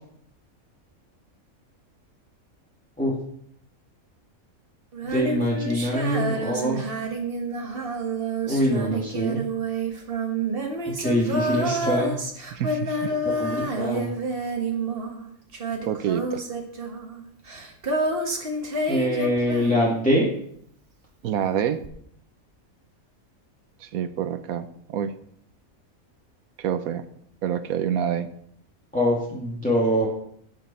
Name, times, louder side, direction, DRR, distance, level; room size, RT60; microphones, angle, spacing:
Female singing, 4.9-20.3 21.8-21.9, right 2 dB, 40° right, 1.6 m, -29 dB
voice 1, 5.0-6.9 8.5-9.4 11.0-12.1 13.4-14.1 18.9-20.3 28.9-30.1, equal, 5° left, -6 dB, 2.2 m, -24 dB
voice 2, 12.5-13.1 15.8-16.4 21.2-21.8 23.8-25.1 26.6-27.0 27.4-28.3, right 9 dB, 85° right, 11 dB, 1.3 m, -27 dB
17.5 x 6.1 x 4.3 m, 0.69 s
omnidirectional pair, 1.5 m